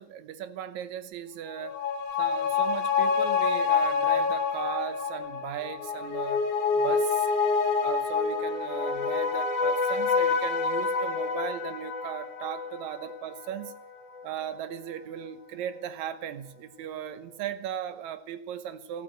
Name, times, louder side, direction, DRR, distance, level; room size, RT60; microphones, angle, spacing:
voice 1, 0.0-1.8 2.2-6.4 6.7-7.3 7.8-13.7 14.2-19.0, right 10 dB, 75° right, 2.3 m, -37 dB
sound 1, 1.5-14.4 14.7-14.8, left 5 dB, 80° left, 3.0 m, -27 dB
13.5 x 13.5 x 7.8 m
omnidirectional pair, 3.4 m